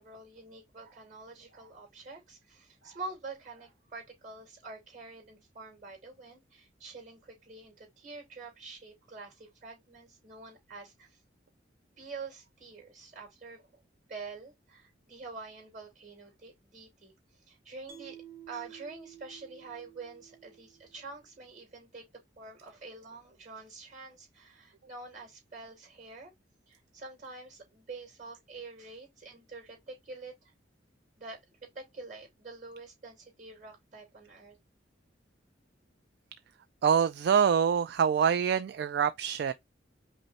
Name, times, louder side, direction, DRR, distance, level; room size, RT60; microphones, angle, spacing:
voice 1, 0.0-11.2 12.0-13.8 14.1-17.1 17.5-18.2 18.5-22.0 22.4-26.3 26.7-30.5 31.2-34.6, right 3 dB, 45° right, 2.8 m, -46 dB
Mallet percussion, 17.9-21.2, right 10 dB, 15° right, 1.4 m, -52 dB
voice 2, 36.8-39.5, right 7 dB, 60° right, 0.3 m, -25 dB
5.4 x 2.1 x 4.1 m
head